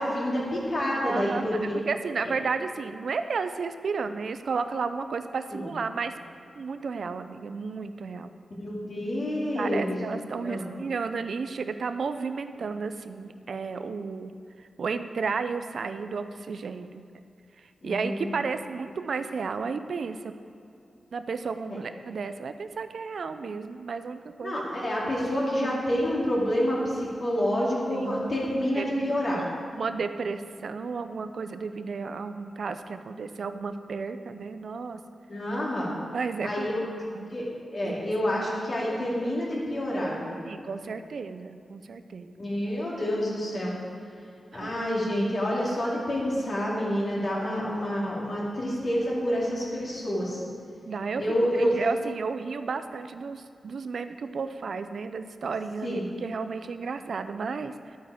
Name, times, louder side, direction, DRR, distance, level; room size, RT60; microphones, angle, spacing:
voice 1, 0.0-1.7 2.2-2.3 5.5-5.7 8.6-10.0 10.4-10.7 17.8-18.3 21.7-21.8 24.4-29.4 35.3-35.9 36.4-36.8 37.3-37.4 37.7-40.4 42.4-43.7 44.5-50.4 51.2-51.8 55.8-56.0, equal, 40° left, -5 dB, 2.7 m, -28 dB
voice 2, 1.0-1.4 1.9-6.1 6.6-8.3 9.6-14.3 14.6-17.0 17.8-20.3 21.1-24.6 24.9-25.0 27.9-29.1 29.8-35.0 36.1-36.7 37.1-37.4 37.8-37.9 38.4-38.5 40.5-42.3 44.5-44.7 50.9-51.2 51.6-58.0, right 5 dB, 60° right, 10 dB, 0.4 m, -33 dB
11.5 x 8.7 x 5.0 m, 2.5 s
wide cardioid pair, 170°, 0 cm